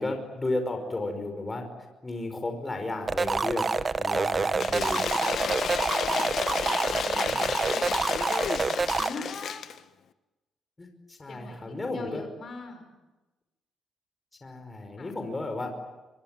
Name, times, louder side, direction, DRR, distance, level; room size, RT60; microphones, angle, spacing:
voice 1, 0.0-1.7 2.0-3.7 4.0-5.1 7.2-7.6 10.8-12.3 14.4-15.7, left 2 dB, 20° left, 5 dB, 5.3 m, -33 dB
sound 1, 3.1-9.1, right 4 dB, 35° right, 1.2 m, -27 dB
Cheering / Applause / Crowd, 4.6-9.8, left 8 dB, 65° left, 1.3 m, -32 dB
voice 2, 7.1-9.6 11.3-12.9 15.0-15.1, left 3 dB, 45° left, 7 dB, 5.5 m, -41 dB
24.5 x 24.0 x 9.3 m, 1.1 s
cardioid pair, 90°, 0 cm